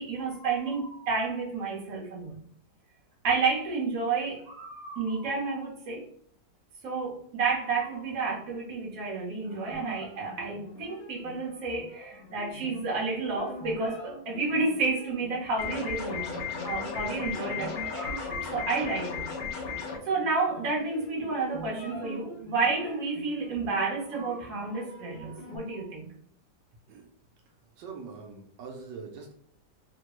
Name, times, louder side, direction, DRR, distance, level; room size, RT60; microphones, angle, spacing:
voice 1, 0.0-2.4 3.2-6.1 6.8-19.3 20.0-26.1, right 4 dB, 55° right, -2 dB, 1.4 m, -31 dB
sound 1, 9.7-25.6, equal, 55° left, 0.9 m, -45 dB
sound 2, 15.6-20.0, left 6 dB, 80° left, 1.4 m, -35 dB
voice 2, 27.8-29.3, right 5 dB, 85° right, 1 dB, 1.3 m, -43 dB
3.8 x 2.1 x 3.0 m, 0.62 s
omnidirectional pair, 1.9 m